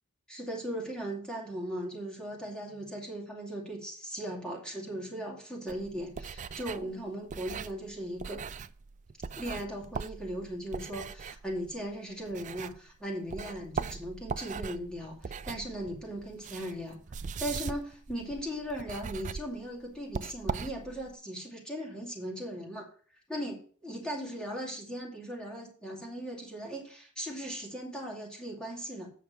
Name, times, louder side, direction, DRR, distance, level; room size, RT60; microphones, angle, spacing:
voice 1, 0.3-8.4 9.4-17.0 17.4-22.9 23.3-29.1, equal, 5° left, -2 dB, 2.5 m, -38 dB
sound 1, 5.7-13.0 13.3-21.1, right 5 dB, 35° right, 0.4 m, -40 dB
8.7 x 5.9 x 5.2 m, 0.44 s
head